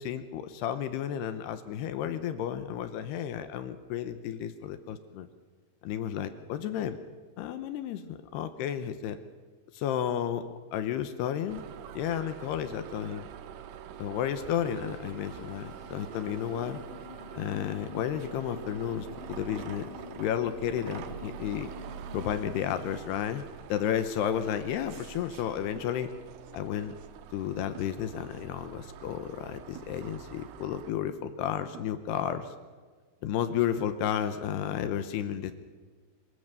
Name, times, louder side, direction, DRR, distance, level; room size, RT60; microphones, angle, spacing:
voice 1, 0.0-5.3 5.8-7.0 7.4-9.2 9.7-11.6 11.9-13.3 14.0-16.8 17.3-19.9 20.2-21.7 22.1-23.4 23.7-26.1 26.5-26.9 27.3-32.5 33.2-35.5, left 9 dB, 75° left, 10 dB, 2.7 m, -32 dB
sound 1, 11.5-30.9, right 9 dB, 85° right, 3.5 m, -45 dB
sound 2, 14.5-22.9, left 7 dB, 50° left, 3.0 m, -49 dB
sound 3, 25.8-26.0 27.7-28.1 29.7-30.0 31.7-32.1, right 8 dB, 60° right, 3.5 m, -49 dB
25.5 x 16.5 x 6.7 m, 1.5 s
omnidirectional pair, 5.4 m